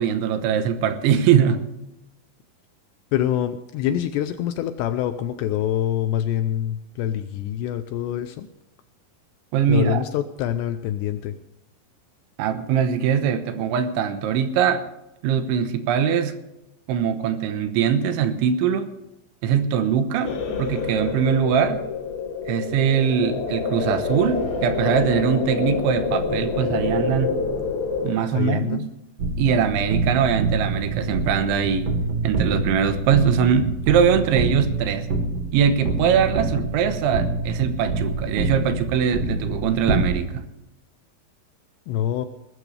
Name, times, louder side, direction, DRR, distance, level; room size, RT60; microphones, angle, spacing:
voice 1, 0.0-1.6 9.5-10.0 12.4-14.8 15.2-16.3 16.9-18.9 19.4-21.9 22.5-27.3 28.0-28.9 29.4-31.9 32.2-35.1 35.5-40.5, right 7 dB, 80° right, 9 dB, 3.4 m, -22 dB
voice 2, 3.1-8.5 9.7-11.4 28.3-28.9 41.9-42.3, left 11 dB, 80° left, 10 dB, 2.5 m, -25 dB
sound 1, 20.2-28.1, left 5 dB, 55° left, 3.6 m, -27 dB
sound 2, 29.2-40.1, right 3 dB, 55° right, 1.8 m, -26 dB
20.0 x 13.5 x 3.3 m, 0.91 s
omnidirectional pair, 5.5 m